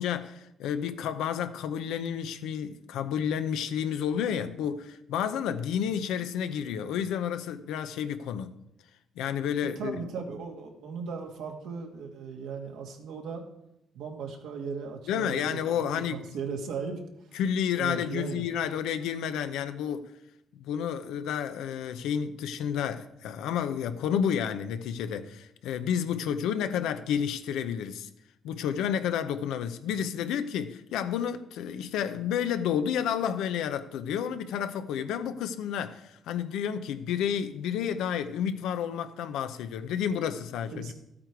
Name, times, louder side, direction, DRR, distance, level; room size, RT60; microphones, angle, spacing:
voice 1, 0.0-8.6 9.2-10.0 15.1-16.2 17.3-20.1 20.5-28.1 28.4-40.9, left 8 dB, 90° left, 0.8 m, -30 dB
voice 2, 9.6-13.4 13.9-15.8 16.1-17.3 17.7-18.4 40.7-40.9, right 5 dB, 85° right, 2.0 m, -37 dB
13.0 x 8.8 x 4.7 m
cardioid pair, 90°, 0 cm